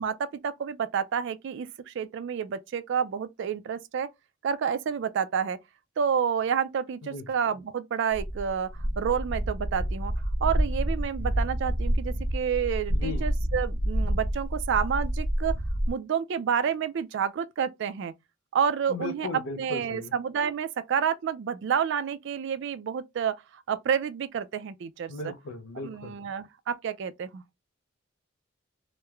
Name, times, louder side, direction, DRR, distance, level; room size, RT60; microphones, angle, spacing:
voice 1, 0.0-4.1 4.4-5.6 6.0-8.7 9.0-10.1 10.4-15.6 15.9-18.1 18.5-19.3 19.6-25.3 25.8-27.4, right 7 dB, 65° right, 0.3 m, -29 dB
sound 1, 8.1-15.9, equal, 45° left, 0.7 m, -28 dB
voice 2, 12.9-13.3 18.9-20.1 25.1-26.2, left 3 dB, 85° left, 0.5 m, -36 dB
3.0 x 2.1 x 2.3 m
head